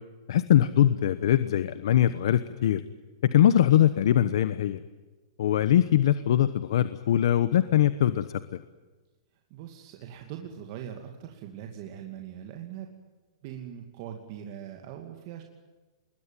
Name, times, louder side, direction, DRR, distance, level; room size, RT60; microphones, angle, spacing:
voice 1, 0.3-2.8 3.2-4.8 5.4-8.6, left 11 dB, 65° left, 14 dB, 1.1 m, -22 dB
voice 2, 9.5-12.9 13.4-15.4, right 10 dB, 40° right, 3 dB, 2.5 m, -41 dB
26.5 x 21.5 x 9.2 m, 1.3 s
supercardioid pair, 165°, 3 cm